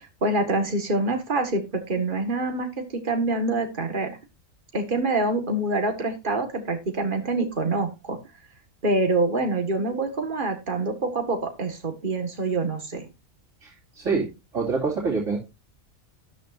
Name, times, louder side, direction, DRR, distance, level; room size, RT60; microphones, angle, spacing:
voice 1, 0.0-4.2 4.7-8.2 8.8-13.1, right 2 dB, 35° right, 5 dB, 2.0 m, -26 dB
voice 2, 13.6-14.3 14.5-15.4, right 4 dB, 60° right, -6 dB, 3.2 m, -26 dB
12.5 x 10.0 x 2.7 m, 0.25 s
omnidirectional pair, 1.4 m